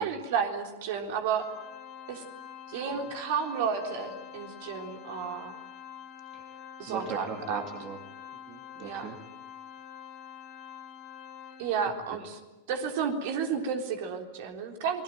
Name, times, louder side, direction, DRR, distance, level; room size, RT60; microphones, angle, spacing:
voice 1, 0.0-1.5 2.1-2.2 2.7-5.5 6.8-7.6 8.8-9.1 11.6-12.4 12.7-15.0, right 6 dB, 55° right, 4 dB, 3.7 m, -32 dB
Organ, 1.3-12.0, left 9 dB, 35° left, 3.1 m, -46 dB
voice 2, 6.3-8.0 8.5-9.2 12.2-12.3, right 5 dB, 35° right, 4 dB, 3.0 m, -40 dB
28.5 x 21.0 x 9.2 m, 1.1 s
figure-of-eight pair, 95°, 0 cm